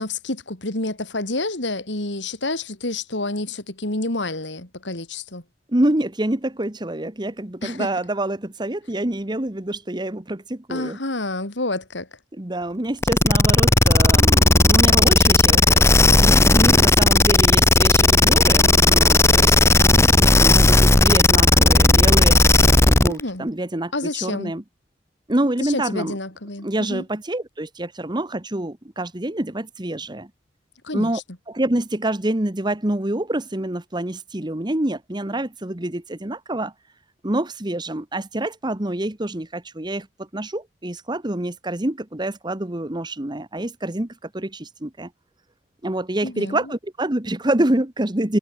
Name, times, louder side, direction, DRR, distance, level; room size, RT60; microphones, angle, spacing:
voice 1, 0.0-5.4 7.6-7.9 10.7-12.1 23.1-23.5 23.9-24.5 25.6-27.0 30.8-31.1 46.2-46.6, left 2 dB, 80° left, 3.9 m, -28 dB
voice 2, 5.7-11.0 12.3-19.5 20.1-22.4 22.8-24.6 25.3-26.2 26.6-30.3 30.9-31.2 31.5-36.7 37.2-45.1 45.8-48.4, right 1 dB, 25° right, 1.4 m, -26 dB
sound 1, 13.0-23.2, left 2 dB, 15° left, 0.7 m, -15 dB
head